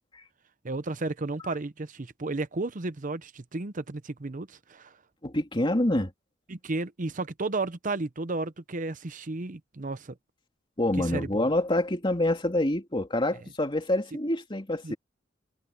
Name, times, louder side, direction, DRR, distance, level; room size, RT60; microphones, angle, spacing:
voice 1, 0.6-5.0 6.5-10.1 11.0-11.5 14.8-14.9, right 3 dB, 45° right, 0.8 m, -33 dB
voice 2, 5.2-6.1 10.8-15.0, left 1 dB, 25° left, 2.7 m, -27 dB
head